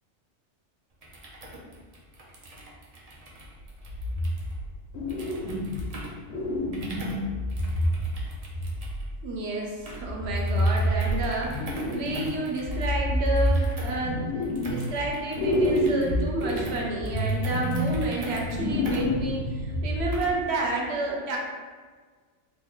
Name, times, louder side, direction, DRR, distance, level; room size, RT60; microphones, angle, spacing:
sound 1, 0.9-20.5, right 1 dB, 50° right, 0.4 m, -44 dB
sound 2, 3.9-4.7 4.9-5.9 6.3-9.1 10.0-12.3 12.6-15.1 15.3-20.3, left 1 dB, 70° left, 0.9 m, -28 dB
voice 1, 9.2-14.3 14.7-21.4, right 3 dB, 70° right, -1 dB, 0.8 m, -30 dB
3.1 x 2.2 x 3.6 m, 1.5 s
omnidirectional pair, 1.2 m